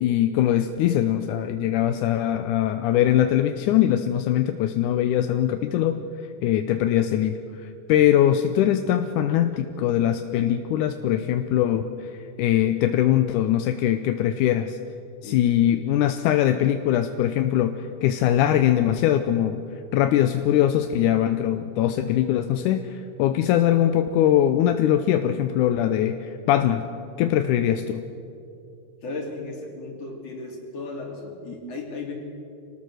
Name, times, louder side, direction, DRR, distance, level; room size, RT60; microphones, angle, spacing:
voice 1, 0.0-6.0 6.4-12.1 12.4-14.8 15.2-19.6 19.9-26.9 27.2-28.0, left 11 dB, 75° left, 8 dB, 2.0 m, -22 dB
voice 2, 29.0-32.1, left 3 dB, 45° left, 0 dB, 3.9 m, -35 dB
26.5 x 19.0 x 6.4 m, 2.5 s
omnidirectional pair, 4.0 m